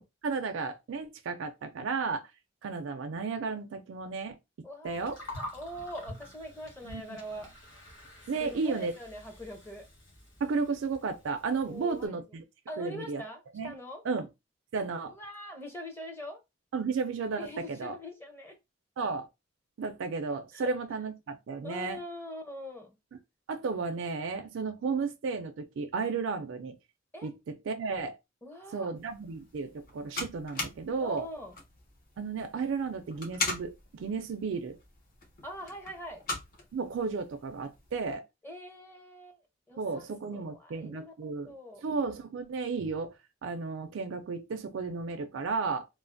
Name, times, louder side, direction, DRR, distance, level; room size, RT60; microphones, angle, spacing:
voice 1, 0.0-2.3 2.6-4.4 4.8-5.2 6.8-7.2 8.3-8.9 10.4-12.5 12.8-13.2 13.5-13.7 14.0-14.3 14.7-15.1 16.7-18.0 19.0-19.3 19.8-22.0 23.5-26.8 27.2-28.2 28.7-31.3 32.2-34.8 36.7-38.2 39.8-41.5 41.8-43.1 43.4-45.9, right 4 dB, 70° right, 0.4 m, -33 dB
voice 2, 4.6-5.0 5.3-7.5 8.4-9.9 11.6-12.2 12.7-14.0 15.0-16.4 17.4-18.6 20.5-20.7 21.6-23.0 27.1-27.3 28.4-28.9 31.0-31.5 35.4-36.2 38.4-39.4 39.7-40.0 40.3-41.8, left 1 dB, 10° left, 0.6 m, -43 dB
Gurgling, 4.9-12.1, left 1 dB, 75° left, 1.0 m, -48 dB
sound 1, 28.9-38.2, left 2 dB, 50° left, 0.7 m, -41 dB
3.1 x 2.0 x 2.5 m
head